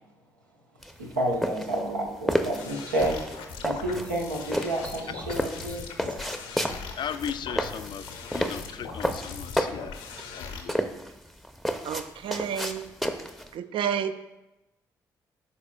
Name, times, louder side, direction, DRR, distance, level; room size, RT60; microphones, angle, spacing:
sound 1, 0.8-13.5, equal, ahead, 0.6 m, -31 dB
voice 1, 1.0-3.2 3.6-6.2, right 1 dB, 85° right, -1 dB, 0.8 m, -30 dB
sound 2, 2.5-10.6, left 5 dB, 75° left, 0.7 m, -40 dB
voice 2, 7.0-8.1 8.3-10.0 10.3-10.8, left 8 dB, 50° left, 12 dB, 0.3 m, -36 dB
voice 3, 11.8-12.9 13.5-14.1, right 8 dB, 60° right, 10 dB, 0.5 m, -30 dB
11.0 x 4.2 x 2.3 m, 0.99 s
figure-of-eight pair, 40°, 10 cm